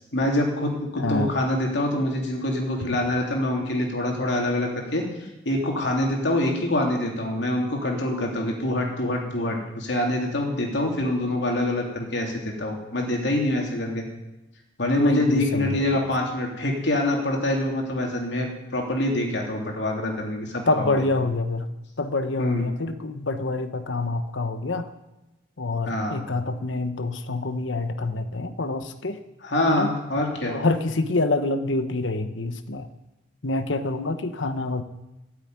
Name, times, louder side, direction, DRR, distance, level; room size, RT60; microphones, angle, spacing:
voice 1, 0.1-5.0 5.4-14.0 14.8-21.0 22.4-22.6 25.8-26.2 29.4-30.5, left 1 dB, 65° left, 0 dB, 3.2 m, -25 dB
voice 2, 1.0-1.3 15.0-16.1 20.7-21.7 22.0-24.9 25.6-29.2 29.7-29.9 30.5-32.9 33.4-34.8, left 2 dB, 85° left, 10 dB, 1.1 m, -26 dB
13.0 x 8.1 x 9.6 m, 1.0 s
head